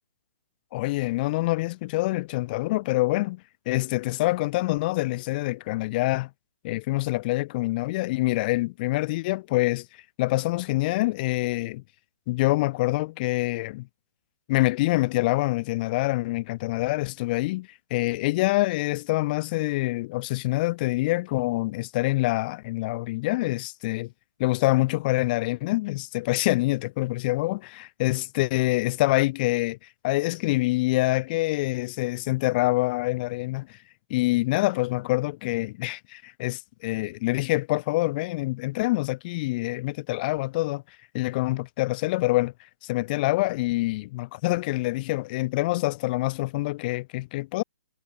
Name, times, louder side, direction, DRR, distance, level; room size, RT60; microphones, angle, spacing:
voice 1, 0.7-3.4 3.6-6.3 6.6-9.8 10.2-11.8 12.3-13.9 14.5-24.1 24.4-27.6 28.0-29.8 30.0-33.7 34.1-40.8 41.1-42.5 42.8-47.6, left 20 dB, 35° left, 1.6 m, -26 dB
hypercardioid pair, 145°, 8 cm